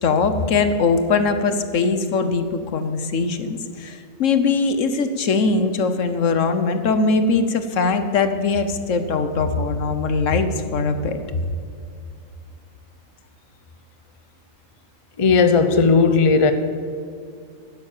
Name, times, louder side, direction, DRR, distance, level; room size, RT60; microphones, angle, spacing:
voice 1, 0.0-11.2, left 4 dB, 70° left, 9 dB, 1.2 m, -21 dB
voice 2, 15.2-16.5, left 4 dB, 30° left, 9 dB, 0.7 m, -15 dB
11.5 x 9.8 x 7.3 m, 2.4 s
omnidirectional pair, 1.4 m